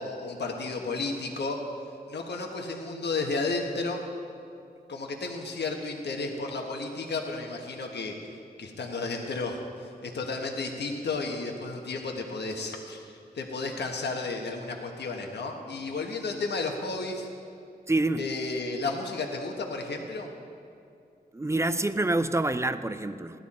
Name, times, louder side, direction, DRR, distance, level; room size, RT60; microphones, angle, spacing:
voice 1, 0.0-1.6 2.1-4.0 4.9-8.1 8.6-17.3 18.2-20.3, left 3 dB, 80° left, 2 dB, 1.3 m, -33 dB
voice 2, 17.9-18.3 21.3-23.4, right 2 dB, 15° right, 11 dB, 0.5 m, -27 dB
16.5 x 11.5 x 4.3 m, 2.6 s
wide cardioid pair, 90°, 17 cm